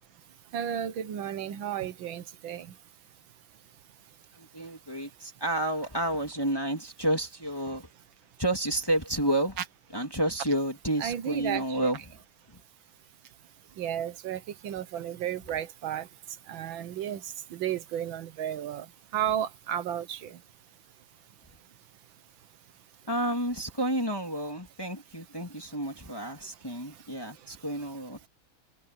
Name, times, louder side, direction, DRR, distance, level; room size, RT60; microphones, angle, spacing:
voice 1, 0.5-2.7 11.0-11.9 13.8-16.1 16.5-18.9 19.1-20.4, right 10 dB, 85° right, 1.8 m, -33 dB
voice 2, 4.4-7.9 8.4-9.6 9.9-12.0 23.1-28.3, right 1 dB, 10° left, 2.3 m, -30 dB
omnidirectional pair, 2.1 m